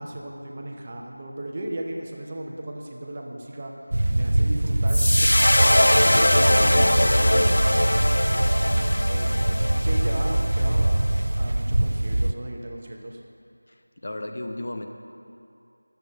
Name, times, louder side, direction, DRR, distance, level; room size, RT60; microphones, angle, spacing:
voice 1, 0.0-3.7 4.1-7.9 8.9-13.2, right 1 dB, 25° right, 0 dB, 0.9 m, -36 dB
sound 1, 3.9-12.3, right 1 dB, 55° right, 0.3 m, -23 dB
sound 2, 4.9-11.2, left 1 dB, 70° left, 0.5 m, -22 dB
voice 2, 13.7-14.9, left 1 dB, 40° left, 4 dB, 0.8 m, -34 dB
11.0 x 7.9 x 6.4 m, 2.6 s
figure-of-eight pair, 175°, 0 cm